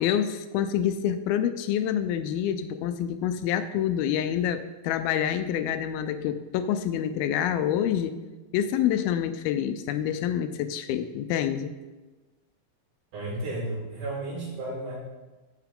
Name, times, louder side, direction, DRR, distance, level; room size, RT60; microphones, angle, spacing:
voice 1, 0.0-8.2 8.5-11.7, left 10 dB, 85° left, 11 dB, 2.4 m, -27 dB
voice 2, 13.1-14.9, right 2 dB, 80° right, -6 dB, 6.0 m, -33 dB
10.5 x 9.0 x 3.7 m, 1.2 s
omnidirectional pair, 4.4 m